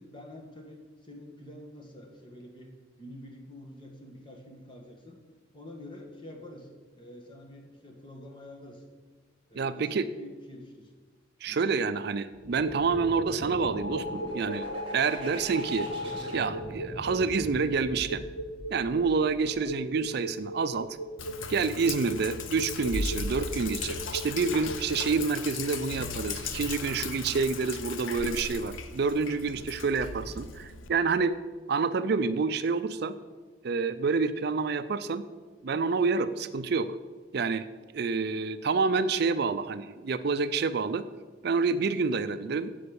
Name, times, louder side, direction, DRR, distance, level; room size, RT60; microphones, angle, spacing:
voice 1, 0.0-5.2 5.5-8.8 9.5-10.9 11.5-11.6 19.4-19.7, left 1 dB, 25° left, 2 dB, 1.6 m, -47 dB
voice 2, 9.6-10.1 11.4-14.7 14.9-15.9 16.3-18.2 18.7-20.9 21.5-31.4 31.7-33.1 33.6-35.2 35.6-36.9 37.3-37.7 37.9-41.0 41.4-42.7, right 4 dB, 55° right, 12 dB, 0.4 m, -28 dB
sound 1, 12.3-20.0, left 1 dB, 30° right, 3.1 m, -39 dB
sound 2, 12.5-25.3, right 1 dB, 55° left, 0.8 m, -39 dB
Sink (filling or washing), 21.2-30.9, left 4 dB, 90° left, 0.8 m, -37 dB
8.4 x 7.8 x 6.9 m, 1.4 s
head